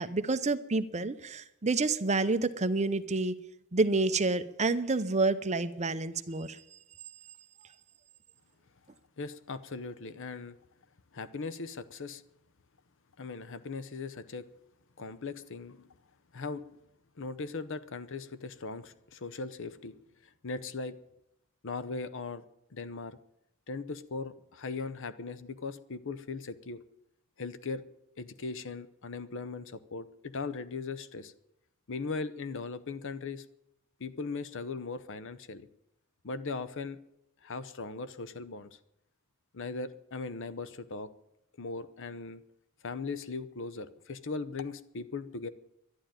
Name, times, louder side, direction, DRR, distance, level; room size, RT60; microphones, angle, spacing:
voice 1, 0.0-3.4 3.7-6.6, right 3 dB, 30° right, 10 dB, 0.8 m, -28 dB
voice 2, 9.2-10.6 11.1-12.2 13.2-14.5 15.0-15.9 16.3-16.6 17.2-20.0 20.4-20.9 21.6-22.4 22.7-23.2 23.7-26.8 27.4-27.8 28.2-31.3 31.9-33.4 34.0-35.7 36.2-37.0 37.4-38.7 39.5-41.1 41.6-42.4 42.8-45.5, left 4 dB, 60° left, 14 dB, 0.8 m, -39 dB
11.5 x 11.0 x 8.9 m, 0.80 s
head